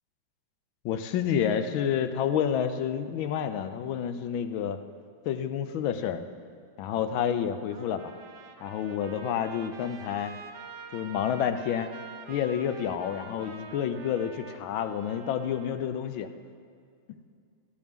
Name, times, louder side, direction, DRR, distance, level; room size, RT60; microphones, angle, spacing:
voice 1, 0.8-4.8 5.2-6.2 6.8-8.0 8.6-10.3 10.9-11.9 12.3-16.3, left 8 dB, 90° left, 9 dB, 1.5 m, -29 dB
Trumpet, 7.7-15.9, right 5 dB, 65° right, 1.5 m, -47 dB
17.0 x 12.5 x 3.6 m, 2.3 s
omnidirectional pair, 2.1 m